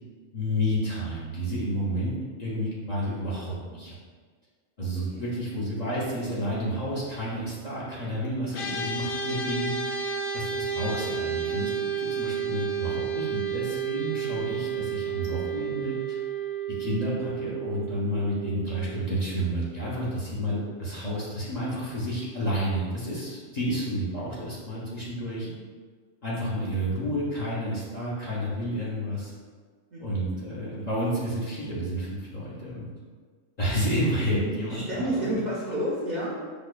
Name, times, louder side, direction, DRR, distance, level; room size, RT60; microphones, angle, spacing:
voice 1, 0.3-3.9 4.8-10.0 10.3-11.7 12.0-16.2 16.7-25.5 26.2-29.3 30.0-32.9 33.6-35.4, equal, 45° left, -7 dB, 0.6 m, -30 dB
sound 1, 8.5-20.0, right 6 dB, 70° left, 0.8 m, -32 dB
voice 2, 34.7-36.3, right 1 dB, 55° right, -6 dB, 0.5 m, -30 dB
4.8 x 2.2 x 2.3 m, 1.6 s
omnidirectional pair, 1.2 m